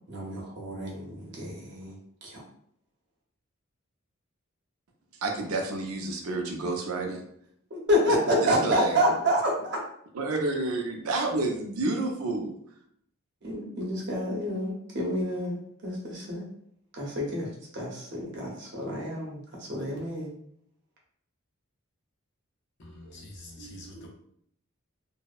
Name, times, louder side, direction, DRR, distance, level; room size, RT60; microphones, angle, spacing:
voice 1, 0.1-2.4 7.7-9.8 13.4-16.5 16.9-17.5 17.7-20.3, equal, 55° right, -3 dB, 0.7 m, -29 dB
voice 2, 5.2-7.2 8.3-9.0 10.1-12.5, right 2 dB, 85° right, 2 dB, 0.5 m, -29 dB
voice 3, 22.8-24.1, equal, 55° left, -2 dB, 0.6 m, -45 dB
2.6 x 2.1 x 2.3 m, 0.68 s
head